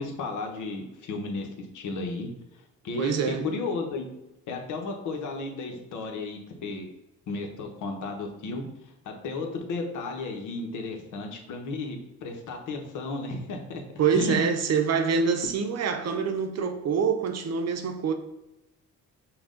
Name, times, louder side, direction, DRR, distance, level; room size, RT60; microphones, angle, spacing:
voice 1, 0.0-1.5 1.7-2.3 2.8-4.1 4.5-6.9 7.3-8.7 9.1-13.8 14.1-14.5, left 3 dB, 80° left, 1.0 m, -33 dB
voice 2, 3.0-3.5 14.0-18.1, right 6 dB, 55° right, 0.7 m, -25 dB
6.0 x 2.4 x 3.7 m
cardioid pair, 90°, 30 cm